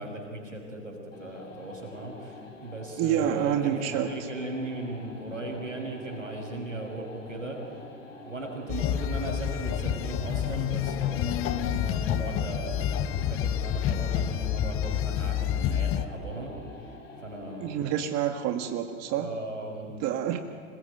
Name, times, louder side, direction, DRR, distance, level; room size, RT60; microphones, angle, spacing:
voice 1, 0.0-7.6 8.2-16.5 16.8-17.0 17.2-17.9 19.2-20.0, right 2 dB, 90° right, 2 dB, 5.5 m, -37 dB
sound 1, 1.1-18.1, left 3 dB, 85° left, 4.2 m, -47 dB
voice 2, 3.0-4.1 11.7-11.8 17.6-19.3 20.0-20.4, right 10 dB, 45° right, 6 dB, 1.7 m, -28 dB
sound 2, 8.7-16.0, left 10 dB, 35° left, 1.2 m, -28 dB
26.5 x 20.5 x 9.2 m, 2.5 s
figure-of-eight pair, 85°, 37 cm